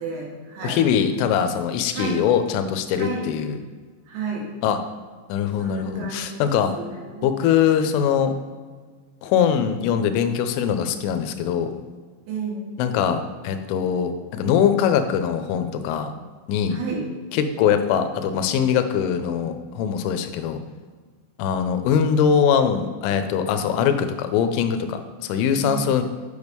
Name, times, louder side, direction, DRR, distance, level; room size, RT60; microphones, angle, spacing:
voice 1, 0.0-0.8 1.9-2.3 2.9-3.3 4.1-4.5 5.6-7.3 12.3-12.7 16.7-17.1 25.7-25.9, right 4 dB, 75° right, -2 dB, 3.8 m, -32 dB
voice 2, 0.6-3.6 4.6-4.8 5.3-6.7 7.2-8.3 9.2-11.8 12.8-16.1 16.5-16.8 17.3-20.6 21.4-26.0, left 8 dB, 85° left, 8 dB, 3.1 m, -22 dB
8.1 x 6.7 x 3.5 m, 1.5 s
omnidirectional pair, 5.7 m